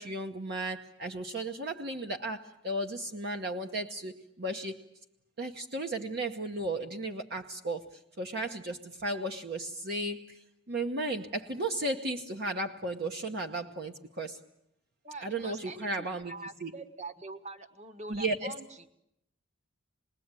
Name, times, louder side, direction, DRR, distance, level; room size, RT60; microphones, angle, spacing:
voice 1, 0.0-4.8 5.4-7.9 8.2-10.4 10.7-14.4 15.2-16.3 16.6-16.7 18.1-18.6, right 2 dB, 55° right, 4 dB, 1.1 m, -34 dB
voice 2, 15.0-18.9, right 3 dB, 35° right, 7 dB, 1.4 m, -44 dB
28.0 x 20.5 x 9.0 m, 0.81 s
head